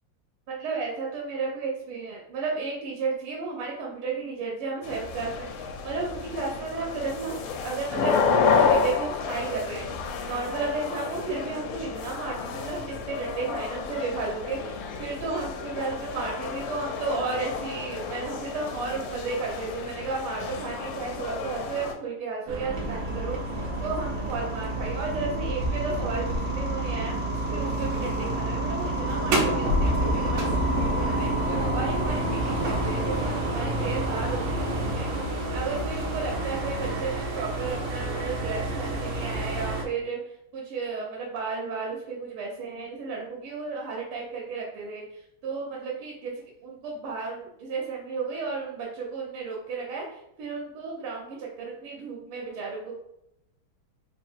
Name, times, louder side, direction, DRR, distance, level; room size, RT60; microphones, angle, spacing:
voice 1, 0.5-7.4 7.6-9.9 10.3-23.4 23.8-27.2 27.5-31.3 31.7-35.1 35.5-40.2 40.5-45.0 45.4-46.3 46.6-52.9, right 4 dB, 85° right, -3 dB, 1.7 m, -33 dB
sound 1, 4.8-21.9, left 5 dB, 75° left, 1.1 m, -30 dB
sound 2, 22.5-39.8, right 1 dB, 70° right, 1.5 m, -30 dB
sound 3, 22.7-36.9, right 1 dB, 45° right, 1.1 m, -32 dB
3.8 x 2.1 x 4.4 m, 0.81 s
omnidirectional pair, 2.3 m